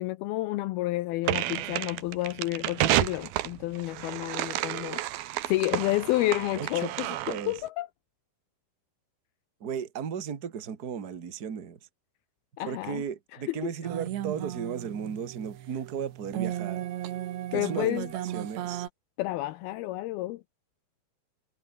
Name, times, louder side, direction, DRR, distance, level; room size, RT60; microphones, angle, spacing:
voice 1, 0.0-5.0 5.5-7.9 12.6-13.0 13.5-13.6 17.5-18.1 19.2-20.4, left 17 dB, 80° left, 2.3 m, -30 dB
sound 1, 1.2-7.6, right 15 dB, 70° right, 2.7 m, -31 dB
voice 2, 6.5-6.9 7.3-7.5 9.6-11.8 12.6-16.9 17.5-18.9, right 7 dB, 40° right, 1.3 m, -35 dB
sound 2, 13.8-18.9, right 12 dB, 85° right, 4.1 m, -35 dB
omnidirectional pair, 4.9 m